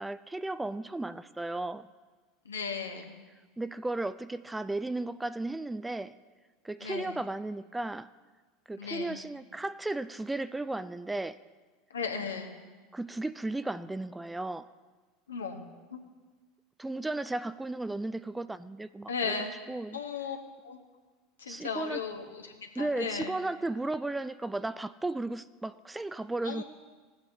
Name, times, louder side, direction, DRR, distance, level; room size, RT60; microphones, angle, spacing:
voice 1, 0.0-1.9 3.6-6.1 6.6-8.1 8.7-11.4 12.9-14.7 16.8-19.3 19.7-20.0 21.5-22.0 22.8-26.6, right 2 dB, 10° right, 14 dB, 0.3 m, -35 dB
voice 2, 2.4-3.1 6.8-7.2 8.8-9.2 11.9-12.5 15.3-15.6 15.9-16.0 19.1-19.5 19.9-20.4 20.6-20.8 21.4-23.4 26.4-26.6, left 5 dB, 80° left, 4 dB, 1.0 m, -36 dB
16.0 x 8.2 x 2.7 m, 1.4 s
figure-of-eight pair, 75°, 0 cm